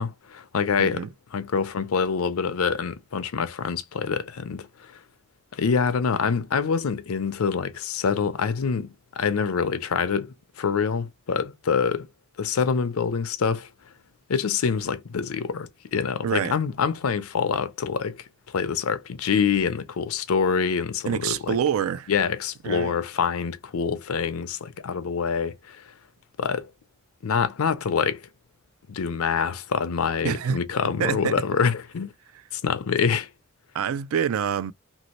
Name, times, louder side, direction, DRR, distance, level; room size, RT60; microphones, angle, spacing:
voice 1, 0.0-4.9 5.5-12.1 12.4-13.7 14.3-18.2 18.5-21.6 22.1-25.8 26.4-26.7 27.2-28.2 28.9-32.1 32.5-33.3, left 6 dB, 85° left, 0.5 m, -26 dB
voice 2, 16.2-16.6 21.1-22.1 22.6-23.0 30.2-30.6 31.0-31.4 33.7-34.7, right 8 dB, 75° right, 0.3 m, -26 dB
2.9 x 2.7 x 3.0 m
head